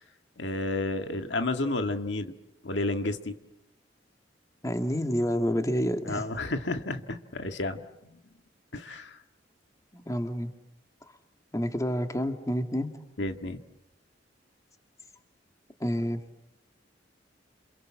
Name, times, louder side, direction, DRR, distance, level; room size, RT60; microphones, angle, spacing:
voice 1, 0.4-2.3 2.6-3.4 6.1-7.8 8.7-9.2 13.2-13.6, left 2 dB, 75° left, 7 dB, 1.9 m, -31 dB
voice 2, 4.6-6.2 9.9-10.5 11.5-12.9 15.8-16.2, equal, 20° left, 6 dB, 2.1 m, -28 dB
29.0 x 27.5 x 7.5 m, 0.83 s
head